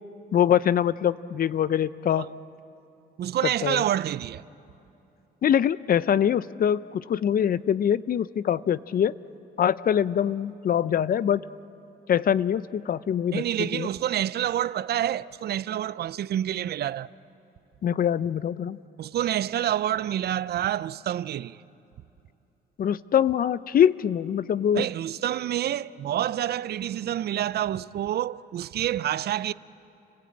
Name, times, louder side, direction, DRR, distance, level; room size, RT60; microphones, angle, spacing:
voice 1, 0.3-2.3 3.6-3.8 5.4-9.1 9.6-11.4 12.1-13.4 13.7-13.9 17.8-18.8 22.8-24.9, left 9 dB, 50° left, 0.6 m, -23 dB
voice 2, 3.2-4.4 13.3-17.1 19.0-21.6 24.7-29.5, right 11 dB, 60° right, 0.5 m, -28 dB
30.0 x 17.0 x 8.8 m
cardioid pair, 85°, 19 cm